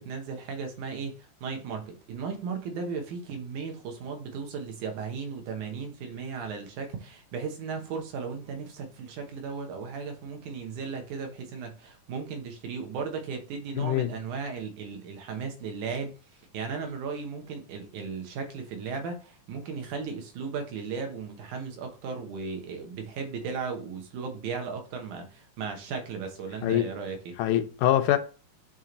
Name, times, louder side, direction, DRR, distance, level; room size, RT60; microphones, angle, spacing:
voice 1, 0.0-27.4, right 5 dB, 75° right, 2.6 m, -36 dB
voice 2, 13.7-14.1 26.6-26.9 27.4-28.2, left 12 dB, 90° left, 2.2 m, -24 dB
8.2 x 3.0 x 3.9 m
omnidirectional pair, 3.6 m